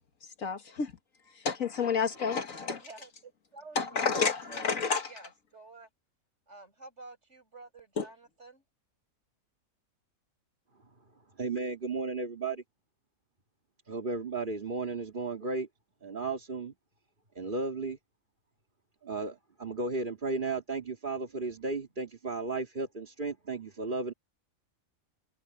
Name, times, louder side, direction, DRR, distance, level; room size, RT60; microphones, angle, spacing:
voice 1, 0.4-0.9 1.4-2.8 3.8-5.1 8.0-8.1, left 5 dB, 70° left, 2.0 m, -30 dB
voice 2, 2.8-4.0 4.4-5.9 6.5-8.6, right 3 dB, 55° right, 7.2 m, -51 dB
voice 3, 11.4-12.6 13.9-15.7 16.0-16.7 17.4-18.0 19.0-24.1, right 3 dB, 35° right, 2.4 m, -34 dB
omnidirectional pair, 1.4 m